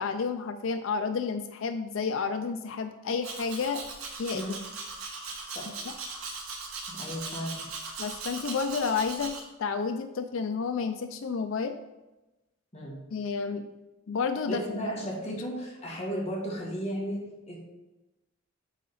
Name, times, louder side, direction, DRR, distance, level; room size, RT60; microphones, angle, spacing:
voice 1, 0.0-3.8 4.2-4.5 5.8-5.9 8.0-9.3 9.6-11.8 13.1-13.7 14.1-14.6 15.3-15.4, left 5 dB, 65° left, 8 dB, 0.4 m, -30 dB
Domestic sounds home sounds, 3.2-9.4, right 4 dB, 90° right, 1.2 m, -39 dB
voice 2, 6.9-7.6 12.7-13.0 14.5-17.6, equal, 30° left, -4 dB, 1.8 m, -34 dB
8.3 x 3.7 x 4.1 m, 1.0 s
head